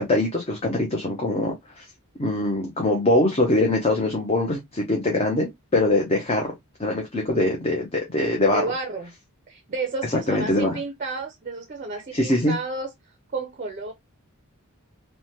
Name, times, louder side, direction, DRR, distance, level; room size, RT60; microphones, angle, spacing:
voice 1, 0.0-1.8 2.2-6.5 6.8-8.6 10.3-10.7 12.1-12.5, left 2 dB, 25° left, 0.6 m, -23 dB
voice 2, 8.5-9.1 9.5-12.9 13.3-13.9, right 3 dB, 35° right, 0.5 m, -31 dB
3.1 x 2.1 x 2.7 m
head